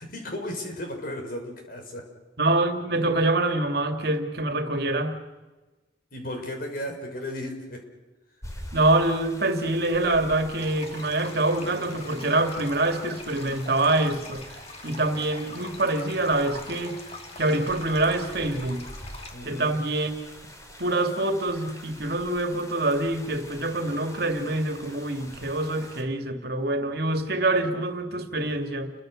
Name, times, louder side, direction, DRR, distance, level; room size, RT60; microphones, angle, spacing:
voice 1, 0.0-2.0 6.1-7.8 19.3-19.7, left 1 dB, 50° left, 3 dB, 6.2 m, -35 dB
voice 2, 2.4-5.2 8.7-14.4 14.8-17.0 17.4-18.8 19.4-20.1 20.8-28.9, right 2 dB, 60° right, 6 dB, 2.6 m, -25 dB
sound 1, 8.4-26.0, left 1 dB, 20° left, 3.6 m, -46 dB
sound 2, 10.6-19.3, left 3 dB, 35° left, 2.9 m, -43 dB
30.0 x 23.5 x 6.6 m, 1.2 s
head